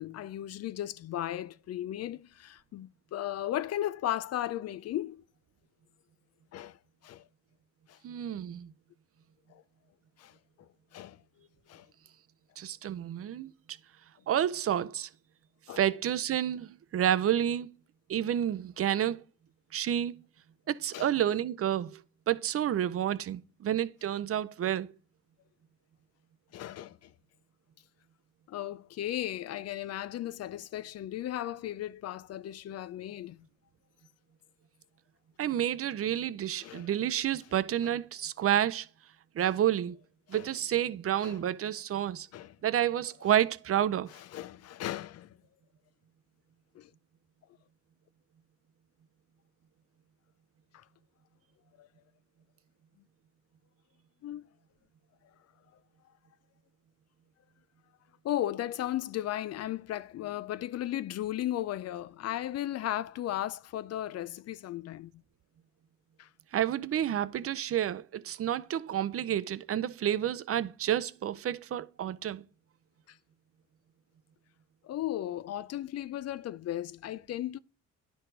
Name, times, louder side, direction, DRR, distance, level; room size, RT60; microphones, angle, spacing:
voice 1, 0.0-5.2 6.5-6.8 7.0-7.3 7.9-8.0 9.5-9.6 10.2-11.9 15.7-15.8 20.9-21.1 26.5-27.1 28.5-33.5 36.6-36.9 37.8-37.9 39.4-39.5 40.3-40.5 41.2-41.4 42.3-42.6 44.1-45.4 46.7-46.9 50.7-50.8 51.8-51.9 54.2-54.5 58.2-65.1 66.2-66.3 73.1-73.2 74.8-77.6, left 13 dB, 55° left, 0.4 m, -36 dB
voice 2, 8.0-8.7 12.6-13.5 14.3-15.1 15.7-17.7 18.1-19.2 19.7-20.2 20.7-22.0 22.3-24.9 35.4-38.9 39.4-40.0 40.3-42.3 42.6-44.1 66.5-72.4, right 10 dB, 50° right, 0.6 m, -29 dB
10.0 x 4.7 x 3.9 m
cardioid pair, 90°, 30 cm